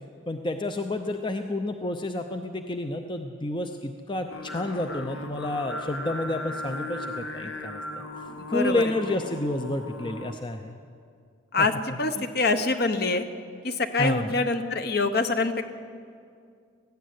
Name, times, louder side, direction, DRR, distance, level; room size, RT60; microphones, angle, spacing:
voice 1, 0.3-8.0 8.5-10.8 11.6-12.3 14.0-14.3, left 2 dB, 25° left, 6 dB, 0.6 m, -30 dB
Singing, 4.3-10.3, left 1 dB, 80° left, 1.8 m, -37 dB
voice 2, 8.4-8.8 11.5-11.7 12.0-13.3 13.6-15.6, left 3 dB, 50° left, 8 dB, 1.0 m, -25 dB
18.5 x 15.0 x 9.5 m, 2.3 s
head